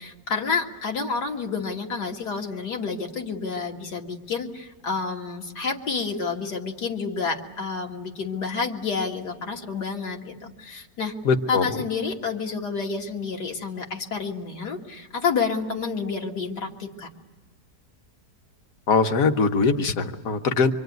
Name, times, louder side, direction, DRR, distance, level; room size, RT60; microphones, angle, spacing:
voice 1, 0.0-11.1 11.5-17.1, left 5 dB, 75° left, 2 dB, 2.5 m, -29 dB
voice 2, 11.2-11.8 18.9-20.7, left 4 dB, 60° left, 7 dB, 1.5 m, -21 dB
25.0 x 25.0 x 9.4 m, 1.3 s
omnidirectional pair, 1.8 m